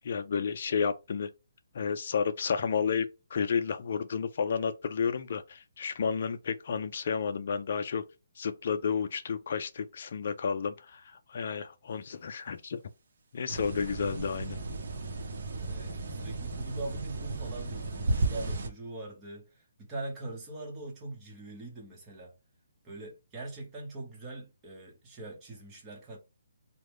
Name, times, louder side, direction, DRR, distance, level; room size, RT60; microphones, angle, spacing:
voice 1, 0.0-1.3 1.7-3.1 3.3-8.0 8.4-12.8 13.3-14.6, left 6 dB, 45° left, 0.4 m, -31 dB
sound 1, 13.5-18.7, right 3 dB, 55° right, 0.8 m, -34 dB
voice 2, 15.6-22.3 22.8-26.2, right 2 dB, 15° right, 0.9 m, -42 dB
3.4 x 2.1 x 3.1 m
hypercardioid pair, 170°, 0 cm